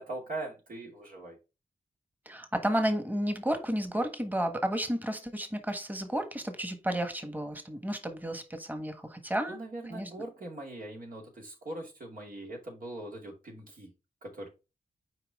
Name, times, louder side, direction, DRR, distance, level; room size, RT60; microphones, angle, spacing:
voice 1, 0.0-1.4 9.5-13.9 14.2-14.5, right 2 dB, 70° right, 2.7 m, -41 dB
voice 2, 2.2-9.6 9.9-10.1, equal, 10° right, 1.4 m, -32 dB
5.8 x 4.7 x 3.6 m
cardioid pair, 50°, 15 cm